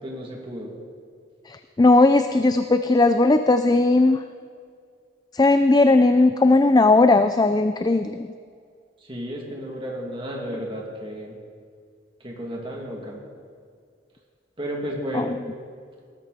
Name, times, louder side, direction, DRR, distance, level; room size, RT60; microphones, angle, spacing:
voice 1, 0.0-0.8 9.0-11.3 12.2-13.2 14.6-15.4, equal, 30° right, -1 dB, 2.5 m, -33 dB
voice 2, 1.5-4.2 5.3-8.3 15.1-15.3, left 2 dB, 20° left, 10 dB, 0.4 m, -17 dB
18.5 x 13.5 x 4.2 m, 2.1 s
head